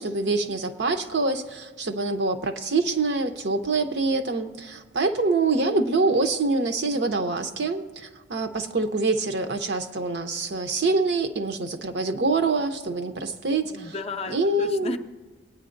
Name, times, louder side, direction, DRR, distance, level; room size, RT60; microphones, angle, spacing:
voice 1, 0.0-13.6 14.3-14.9, right 3 dB, 70° right, 7 dB, 0.8 m, -25 dB
voice 2, 13.6-15.0, left 3 dB, 35° left, 8 dB, 0.5 m, -34 dB
21.0 x 9.3 x 2.6 m, 1.3 s
head